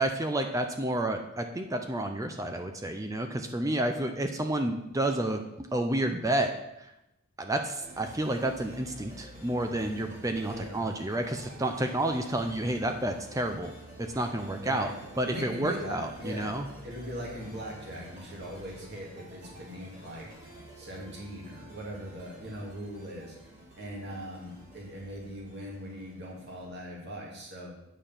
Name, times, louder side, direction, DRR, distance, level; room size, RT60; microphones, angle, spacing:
voice 1, 0.0-6.5 6.8-6.9 7.4-13.7 14.0-16.7, right 1 dB, 15° right, 5 dB, 0.5 m, -30 dB
sound 1, 7.8-27.1, equal, 35° right, 3.4 m, -49 dB
voice 2, 10.4-10.8 14.6-15.0 15.2-16.6 16.8-20.3 20.8-23.4 23.8-27.7, equal, 50° right, -3 dB, 2.4 m, -40 dB
9.0 x 5.1 x 5.7 m, 0.89 s
head